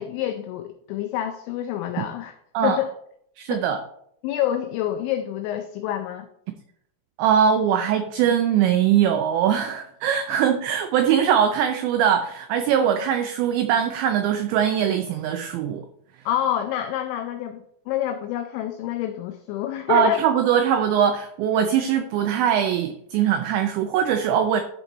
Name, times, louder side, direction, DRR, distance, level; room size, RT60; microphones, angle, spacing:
voice 1, 0.0-2.3 2.6-2.9 3.5-3.6 4.2-6.3 16.3-20.3, left 11 dB, 85° left, 7 dB, 2.6 m, -27 dB
voice 2, 3.4-3.8 7.2-15.9 19.9-24.6, right 9 dB, 90° right, 7 dB, 2.5 m, -21 dB
12.5 x 4.4 x 4.0 m, 0.70 s
omnidirectional pair, 5.8 m